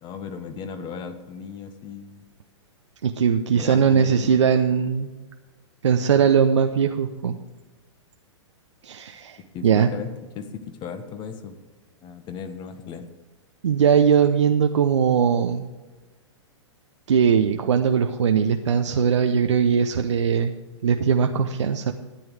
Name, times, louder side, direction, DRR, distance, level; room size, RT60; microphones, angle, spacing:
voice 1, 0.0-2.2 3.5-4.3 9.5-11.6 12.0-13.1, left 6 dB, 30° left, 8 dB, 1.3 m, -36 dB
voice 2, 3.0-5.1 5.8-7.4 8.8-9.9 13.6-15.7 17.1-20.6 20.8-21.9, right 7 dB, 75° right, 5 dB, 0.7 m, -20 dB
13.0 x 8.9 x 4.8 m, 1.2 s
hypercardioid pair, 110°, 16 cm